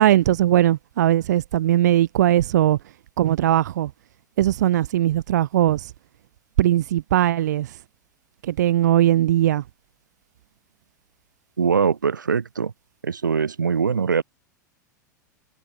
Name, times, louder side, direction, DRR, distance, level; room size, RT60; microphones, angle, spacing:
voice 1, 0.0-2.8 3.2-3.9 4.4-5.9 6.6-7.8 8.4-9.6, right 13 dB, 65° right, 2.9 m, -19 dB
voice 2, 11.6-12.7 13.0-14.2, right 6 dB, 80° right, 4.2 m, -22 dB
figure-of-eight pair, 90°, 10 cm